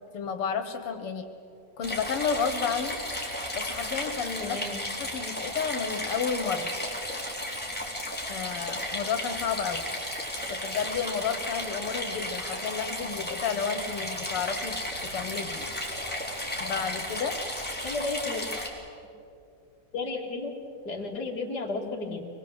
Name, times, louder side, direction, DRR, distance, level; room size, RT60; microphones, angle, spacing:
voice 1, 0.1-1.3 1.8-3.0 3.5-4.6 5.0-6.7 8.3-9.8 10.5-14.7 15.1-15.7 16.6-17.4, left 6 dB, 85° left, 8 dB, 2.2 m, -31 dB
sound 1, 1.8-18.7, left 1 dB, 5° left, 3.5 m, -34 dB
voice 2, 4.4-4.8 17.8-18.4 19.9-20.5 20.8-22.3, left 3 dB, 45° left, 0 dB, 3.1 m, -33 dB
24.0 x 21.5 x 8.0 m, 2.7 s
omnidirectional pair, 2.4 m